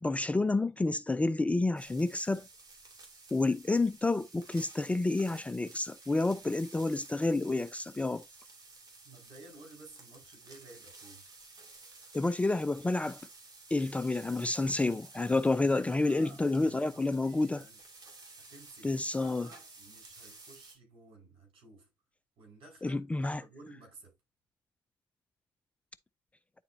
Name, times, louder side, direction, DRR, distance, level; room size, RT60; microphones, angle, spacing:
voice 1, 0.0-2.5 3.3-8.2 12.1-13.2 13.7-17.6 18.8-19.5 22.8-23.4, left 2 dB, 15° left, 0.4 m, -29 dB
sound 1, 1.8-20.8, right 3 dB, 40° right, 2.5 m, -53 dB
voice 2, 9.0-11.2 16.0-17.8 18.4-21.9 22.4-24.1, right 2 dB, 65° right, 4.8 m, -55 dB
9.6 x 4.3 x 2.7 m
cardioid pair, 95°, 10 cm